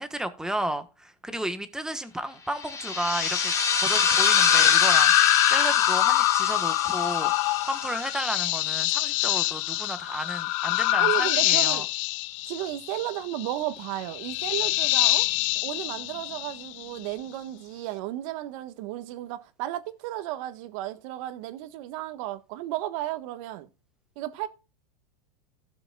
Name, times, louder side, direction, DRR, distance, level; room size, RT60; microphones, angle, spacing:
voice 1, 0.0-3.5 3.8-7.3 7.6-11.8, right 1 dB, 5° right, 1.2 m, -33 dB
sound 1, 2.6-8.9, left 5 dB, 15° left, 1.4 m, -26 dB
sound 2, 3.1-17.0, left 20 dB, 55° left, 0.4 m, -25 dB
voice 2, 11.0-11.8 12.5-15.3 15.6-23.7 24.2-24.5, right 14 dB, 55° right, 1.4 m, -33 dB
16.5 x 7.0 x 2.4 m
supercardioid pair, 135°, 21 cm